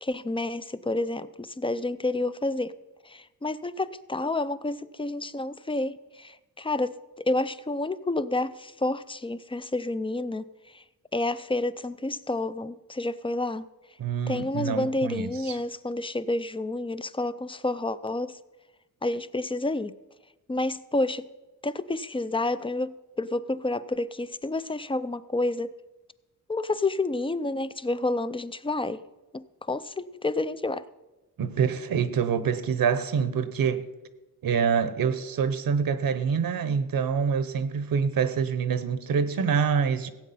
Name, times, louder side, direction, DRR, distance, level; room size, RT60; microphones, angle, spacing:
voice 1, 0.0-2.7 3.1-10.4 10.7-10.8 11.1-13.6 14.3-18.4 19.0-19.9 20.5-21.3 21.6-25.7 26.5-29.0 29.3-30.8, left 2 dB, 15° left, 0.4 m, -29 dB
voice 2, 14.0-15.6 31.4-33.9 34.4-40.1, right 6 dB, 65° right, 0.9 m, -26 dB
16.5 x 8.3 x 5.6 m
wide cardioid pair, 110°, 37 cm